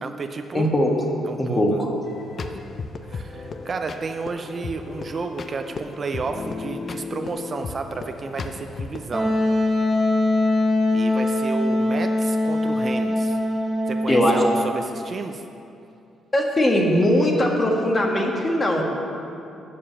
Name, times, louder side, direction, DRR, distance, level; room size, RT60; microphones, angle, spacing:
voice 1, 0.0-0.7 1.3-1.8 2.5-2.6 3.1-9.3 10.9-13.4 13.9-15.4, right 4 dB, 40° right, 6 dB, 0.5 m, -32 dB
voice 2, 0.5-0.9 1.4-1.9 14.1-14.4 16.3-18.8, left 1 dB, 30° left, 0 dB, 1.5 m, -20 dB
sound 1, 2.0-9.0, left 4 dB, 45° left, 0.6 m, -35 dB
Wind instrument woodwind instrument, 9.1-14.7, left 1 dB, 5° right, 1.3 m, -22 dB
7.1 x 6.7 x 7.3 m, 2.7 s
cardioid pair, 90°, 0 cm